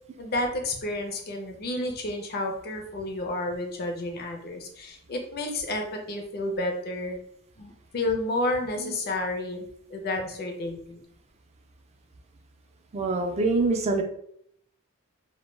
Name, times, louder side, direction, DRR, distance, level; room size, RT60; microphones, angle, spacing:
voice 1, 0.2-7.2 7.6-11.0, left 2 dB, 45° left, 3 dB, 0.5 m, -31 dB
voice 2, 12.9-14.0, right 3 dB, 30° right, 4 dB, 0.3 m, -25 dB
2.2 x 2.1 x 3.1 m, 0.69 s
head